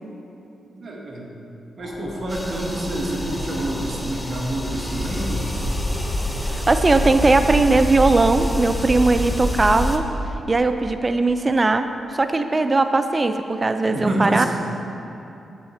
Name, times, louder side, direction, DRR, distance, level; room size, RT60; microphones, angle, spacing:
voice 1, 0.7-1.3 1.8-5.5 13.9-14.5, right 1 dB, 55° right, -2 dB, 1.6 m, -27 dB
sound 1, 1.8-7.8, left 4 dB, 65° left, 0.6 m, -36 dB
sound 2, 2.3-10.0, equal, 10° left, 0.8 m, -27 dB
voice 2, 6.5-10.1 10.5-14.5, right 3 dB, 30° right, 8 dB, 0.4 m, -19 dB
8.2 x 7.5 x 4.4 m, 2.8 s
cardioid pair, 70°, 0 cm